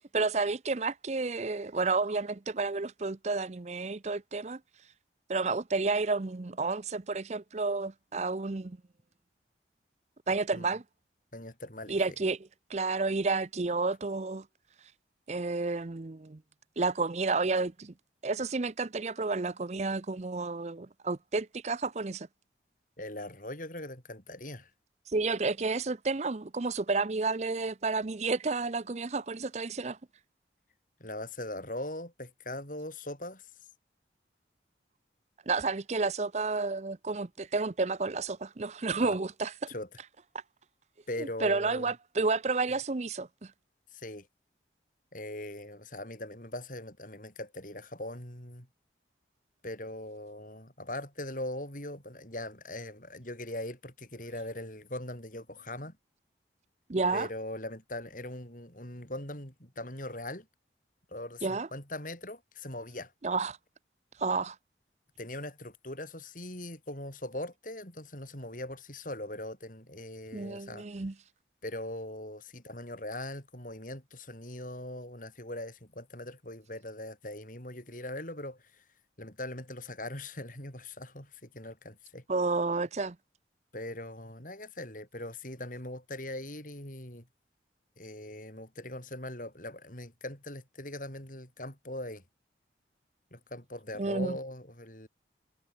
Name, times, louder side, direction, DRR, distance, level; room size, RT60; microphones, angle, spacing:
voice 1, 0.0-4.6 5.3-8.8 10.3-10.8 11.9-12.4 12.7-14.4 15.3-16.4 16.8-17.9 18.2-22.3 25.1-30.0 35.5-39.5 41.4-43.5 56.9-57.3 61.4-61.7 63.2-63.6 64.2-64.6 70.3-71.1 82.3-83.2 94.0-94.3, right 3 dB, 35° right, 0.6 m, -31 dB
voice 2, 11.3-12.0 23.0-24.7 31.0-33.5 39.0-39.2 39.7-40.0 41.1-41.9 43.9-44.3 45.1-48.7 49.6-56.0 57.1-60.5 61.1-63.1 65.2-70.9 71.6-78.8 79.2-82.2 83.7-87.3 88.0-92.2 93.3-95.1, left 1 dB, 45° left, 8.0 m, -41 dB
head